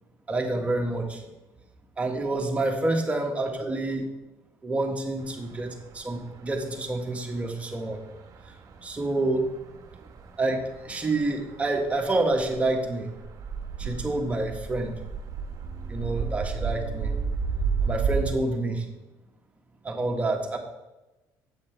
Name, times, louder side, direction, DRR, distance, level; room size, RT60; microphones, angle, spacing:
voice 1, 0.3-1.2 2.0-4.0 4.6-8.0 8.8-9.5 10.4-13.1 13.8-14.9 15.9-17.1 17.8-18.9 19.8-20.6, right 2 dB, 15° right, 2 dB, 1.3 m, -28 dB
sound 1, 5.2-18.3, right 5 dB, 50° right, 1.0 m, -34 dB
8.1 x 5.9 x 4.4 m, 1.0 s
cardioid pair, 105°, 8 cm